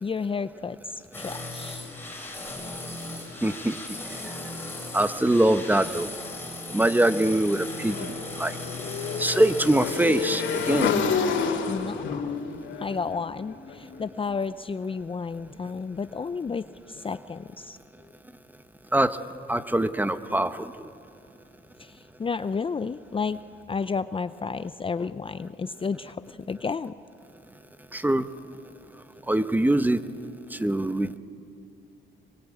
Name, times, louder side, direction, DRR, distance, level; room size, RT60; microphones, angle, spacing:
voice 1, 0.0-1.9 11.7-12.4 12.8-17.8 21.8-23.4 23.7-26.9, left 5 dB, 25° left, 13 dB, 0.6 m, -32 dB
sound 1, 1.1-11.2, left 2 dB, 10° left, 5.9 m, -37 dB
voice 2, 3.4-3.8 4.9-6.1 6.7-8.5 9.2-10.9 18.9-19.1 19.5-20.7 27.9-28.3 29.3-30.0 30.6-31.2, right 1 dB, 10° right, 11 dB, 1.0 m, -23 dB
Motorcycle / Engine, 7.9-14.0, left 6 dB, 70° left, 2.9 m, -29 dB
25.0 x 22.5 x 8.5 m, 2.5 s
cardioid pair, 90°, 20 cm